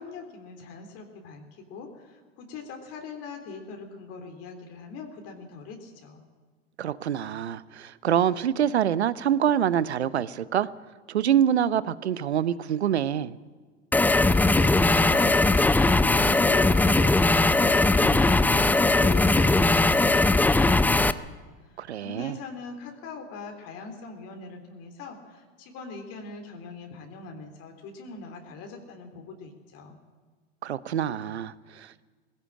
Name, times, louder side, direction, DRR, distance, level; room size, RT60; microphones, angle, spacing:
voice 1, 0.0-6.2 14.4-21.3 22.0-30.0, left 4 dB, 50° left, 4 dB, 3.5 m, -41 dB
voice 2, 6.8-10.7 11.1-13.3 21.8-22.4 30.6-32.1, right 9 dB, 85° right, 17 dB, 0.9 m, -26 dB
sound 1, 13.9-21.1, left 2 dB, 5° left, 0.5 m, -20 dB
19.0 x 16.5 x 8.9 m, 1.5 s
hypercardioid pair, 95°, 32 cm